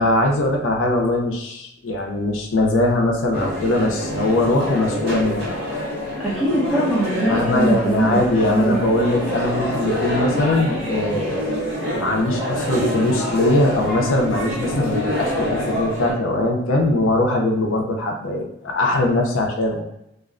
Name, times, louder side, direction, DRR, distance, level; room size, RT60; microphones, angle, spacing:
voice 1, 0.0-5.5 7.3-11.6 11.9-19.8, left 2 dB, 80° left, 1 dB, 0.5 m, -21 dB
sound 1, 3.3-16.1, equal, 60° right, 1.1 m, -26 dB
voice 2, 6.2-8.8, right 1 dB, ahead, -9 dB, 0.8 m, -21 dB
2.4 x 2.1 x 2.4 m, 0.81 s
head